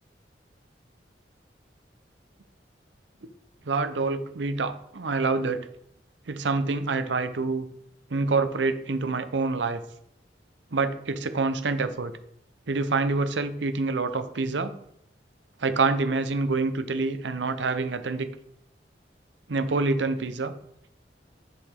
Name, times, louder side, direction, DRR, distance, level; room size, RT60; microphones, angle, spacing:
voice 1, 3.7-5.7 6.3-7.7 8.1-9.8 10.7-12.1 12.7-14.7 15.6-18.3 19.5-20.5, right 3 dB, 85° right, 10 dB, 0.7 m, -26 dB
9.4 x 5.0 x 3.7 m, 0.74 s
head